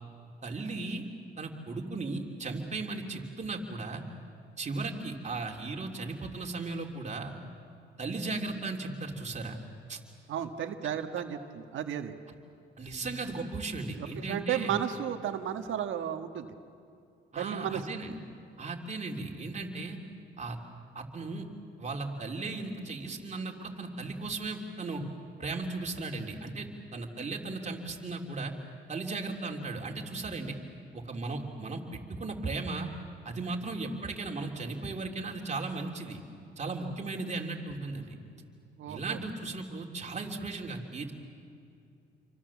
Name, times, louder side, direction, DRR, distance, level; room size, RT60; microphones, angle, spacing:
voice 1, 0.4-1.0 1.4-4.0 4.6-7.3 8.0-9.6 9.9-10.0 12.8-14.7 17.3-18.2 18.6-20.0 20.4-20.6 20.9-21.4 21.8-25.0 25.4-28.5 28.9-30.6 30.9-32.9 33.2-36.2 36.6-38.2 38.9-41.1, right 3 dB, 35° right, 1 dB, 3.3 m, -36 dB
voice 2, 10.3-12.1 14.0-16.6 17.3-17.9 38.8-39.2, right 9 dB, 75° right, 7 dB, 1.5 m, -34 dB
29.0 x 24.5 x 7.4 m, 2.5 s
cardioid pair, 90°, 20 cm